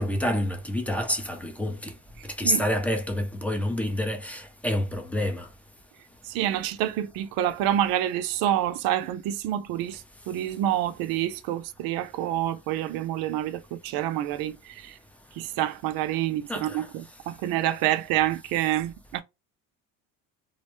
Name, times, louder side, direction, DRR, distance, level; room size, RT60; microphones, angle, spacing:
voice 1, 0.0-1.9 2.4-5.5 16.5-16.9, left 1 dB, 5° left, 0.4 m, -28 dB
voice 2, 6.3-10.0 10.3-14.9 15.4-19.2, right 12 dB, 65° right, 0.5 m, -27 dB
2.5 x 2.1 x 3.0 m
supercardioid pair, 105°, 38 cm